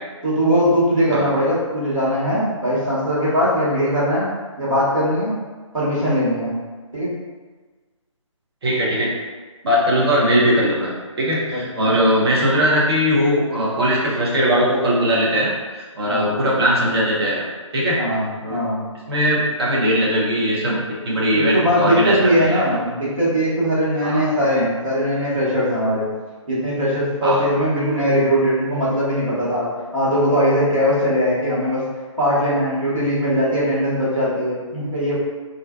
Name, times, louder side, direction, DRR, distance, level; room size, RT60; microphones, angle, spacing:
voice 1, 0.2-4.3 4.6-5.4 5.7-6.5 6.9-7.1 11.5-12.1 16.0-16.3 18.0-18.9 21.3-26.1 26.5-31.8 32.2-35.1, equal, 85° right, -9 dB, 1.2 m, -20 dB
voice 2, 8.6-9.1 9.6-17.5 17.7-18.0 18.4-18.6 19.1-22.8 24.0-24.2 27.2-27.4, equal, 50° right, -4 dB, 0.7 m, -20 dB
2.5 x 2.2 x 2.3 m, 1.4 s
figure-of-eight pair, 145°, 17 cm